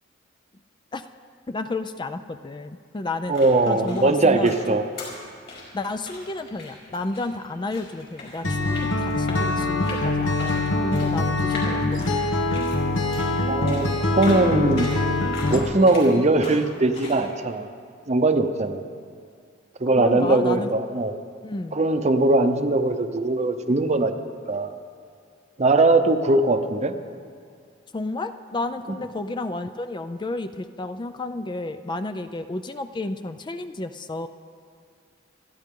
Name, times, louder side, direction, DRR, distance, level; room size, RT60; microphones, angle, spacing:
voice 1, 1.5-3.3 3.7-4.8 5.7-12.2 20.0-20.7 21.4-21.9 27.9-34.3, left 2 dB, 25° left, 9 dB, 0.4 m, -31 dB
sound 1, 3.1-17.2, left 2 dB, 55° left, 5.1 m, -41 dB
voice 2, 3.3-4.8 13.5-14.9 15.5-17.7 18.1-18.8 19.8-21.1 21.7-24.1 24.5-24.7 25.6-26.9, right 2 dB, 35° right, 8 dB, 0.8 m, -20 dB
Acoustic guitar, 8.4-15.6, left 2 dB, 70° left, 1.2 m, -24 dB
28.5 x 10.5 x 3.8 m, 2.2 s
head